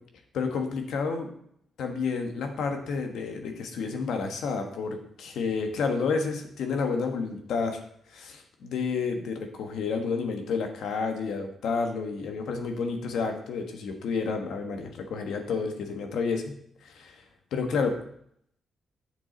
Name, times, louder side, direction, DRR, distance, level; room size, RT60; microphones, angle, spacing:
voice 1, 0.3-1.3 1.8-7.8 8.1-16.6 16.8-17.2 17.5-17.9, left 5 dB, 85° left, 4 dB, 1.3 m, -30 dB
8.3 x 7.1 x 3.9 m, 0.69 s
wide cardioid pair, 175°, 0 cm